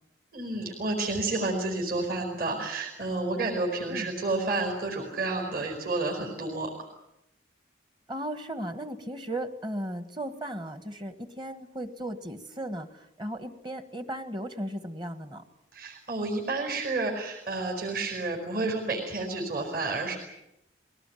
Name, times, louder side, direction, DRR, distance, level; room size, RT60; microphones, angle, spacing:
voice 1, 0.3-6.9 15.7-20.2, right 2 dB, 50° right, 0 dB, 5.0 m, -30 dB
voice 2, 8.1-15.4, right 1 dB, 25° right, 10 dB, 1.5 m, -36 dB
21.5 x 18.5 x 9.1 m, 0.86 s
head